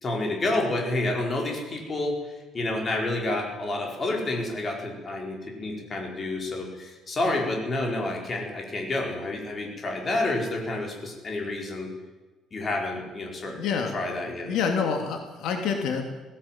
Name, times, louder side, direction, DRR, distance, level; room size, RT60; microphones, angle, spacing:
voice 1, 0.0-2.1 2.5-11.9 12.5-13.6 13.9-14.6, left 2 dB, 25° left, 1 dB, 4.6 m, -29 dB
voice 2, 13.6-13.9 14.5-16.0, left 6 dB, 70° left, 4 dB, 2.9 m, -27 dB
18.5 x 17.0 x 9.1 m, 1.2 s
cardioid pair, 165°, 0 cm